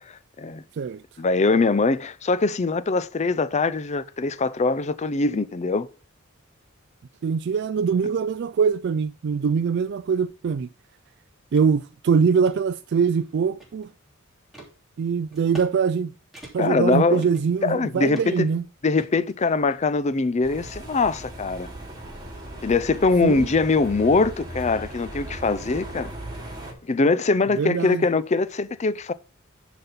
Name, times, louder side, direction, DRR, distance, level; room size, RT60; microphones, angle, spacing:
voice 1, 1.2-5.9 16.6-17.2 17.6-18.5 18.8-21.7 22.6-26.1 26.9-29.1, left 3 dB, 35° left, 0.5 m, -22 dB
voice 2, 7.2-10.7 11.5-13.9 15.0-16.1 16.5-18.6 23.2-23.5 27.6-28.1, right 6 dB, 55° right, 0.3 m, -23 dB
sound 1, 11.6-11.7 12.1-12.6 13.1-14.0 14.5-14.7 15.3-15.7 16.0-16.1 16.3-16.8 17.2-17.8 18.1-18.5 19.0-19.8, right 1 dB, ahead, 3.1 m, -45 dB
sound 2, 20.4-26.7, right 1 dB, 20° right, 2.7 m, -37 dB
10.0 x 4.2 x 5.6 m
head